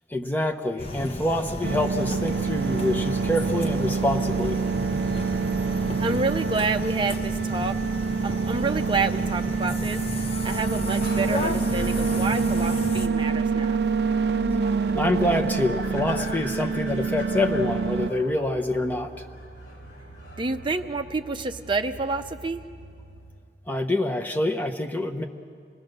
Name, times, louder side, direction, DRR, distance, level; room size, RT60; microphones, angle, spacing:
voice 1, 0.1-4.6 14.9-19.1 23.7-25.3, left 1 dB, 10° left, 3 dB, 1.1 m, -26 dB
sound 1, 0.8-13.1, left 1 dB, 35° left, 1.1 m, -33 dB
sound 2, 1.6-18.1, right 5 dB, 65° right, 0.5 m, -26 dB
voice 2, 6.0-7.8 8.2-13.8 20.4-22.6, right 3 dB, 30° right, 6 dB, 0.7 m, -29 dB
sound 3, 11.0-23.4, equal, 85° left, 4.8 m, -44 dB
27.5 x 19.0 x 6.7 m, 2.2 s
head